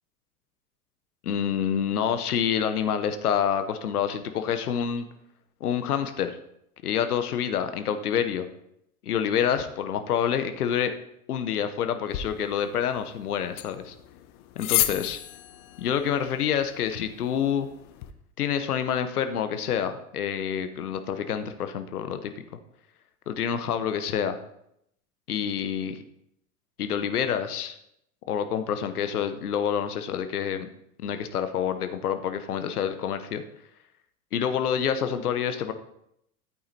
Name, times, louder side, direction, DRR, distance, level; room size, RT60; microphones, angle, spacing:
voice 1, 1.2-5.1 5.6-6.4 6.8-8.5 9.0-10.9 11.3-14.0 14.6-15.2 15.8-17.7 18.4-22.4 23.3-24.4 25.3-26.0 26.8-27.8 28.3-30.7 31.0-33.4 34.3-35.7, left 8 dB, 85° left, 9 dB, 0.8 m, -27 dB
sound 1, 12.1-18.1, left 14 dB, 50° left, 0.9 m, -33 dB
13.5 x 8.7 x 2.7 m, 0.76 s
hypercardioid pair, 90°, 45 cm